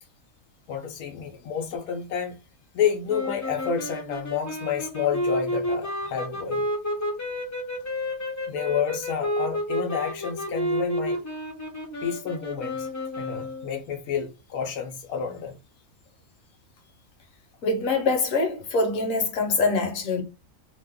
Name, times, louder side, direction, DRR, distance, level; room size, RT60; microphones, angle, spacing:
voice 1, 0.7-2.4 2.7-6.6 8.5-11.2 12.0-12.9 13.2-15.6, left 7 dB, 90° left, 1.1 m, -29 dB
sound 1, 3.1-13.8, left 1 dB, 25° left, 0.4 m, -30 dB
voice 2, 17.6-20.2, left 3 dB, 65° left, 1.2 m, -24 dB
2.9 x 2.2 x 3.4 m
omnidirectional pair, 1.5 m